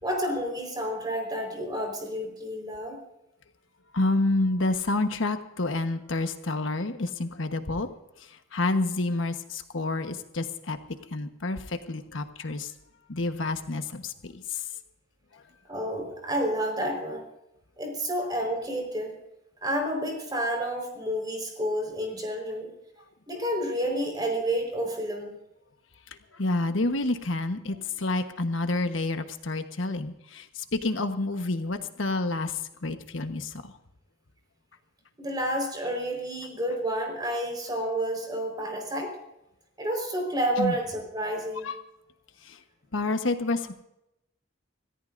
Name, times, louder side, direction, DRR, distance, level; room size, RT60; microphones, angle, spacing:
voice 1, 0.0-3.0 15.7-17.3 17.8-19.1 19.6-22.7 23.3-25.4 35.2-39.2 39.8-41.7, right 1 dB, 20° right, 2 dB, 4.6 m, -30 dB
voice 2, 3.9-7.9 8.5-10.8 11.1-12.7 13.1-14.6 26.4-30.4 30.7-32.5 32.8-33.5 40.6-40.7 41.6-41.8 42.5-42.6 42.9-43.7, left 2 dB, 85° left, 7 dB, 1.2 m, -28 dB
26.5 x 14.5 x 2.6 m, 0.86 s
head